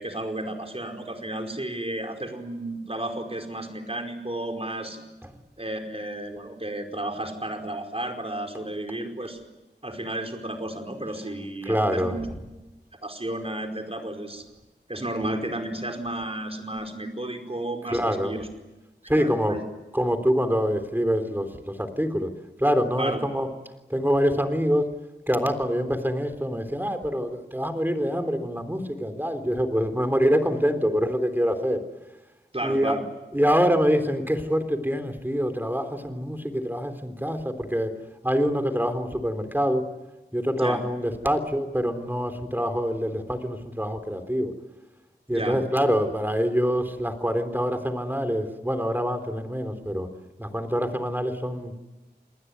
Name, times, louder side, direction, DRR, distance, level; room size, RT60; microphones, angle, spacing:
voice 1, 0.0-5.0 5.6-9.4 9.8-12.2 13.0-14.4 14.9-18.5 19.2-19.6 23.0-23.2 32.5-33.0 40.6-40.8 45.3-45.6, right 1 dB, 35° right, 3 dB, 4.8 m, -32 dB
voice 2, 11.7-12.2 17.9-18.3 19.1-19.6 19.9-22.3 22.6-23.5 23.9-24.9 25.3-31.8 32.6-33.0 33.3-37.9 38.2-39.8 40.3-44.5 45.3-50.1 50.4-51.7, equal, 10° right, 7 dB, 3.7 m, -25 dB
28.5 x 20.0 x 9.6 m, 1.1 s
wide cardioid pair, 55°, 18 cm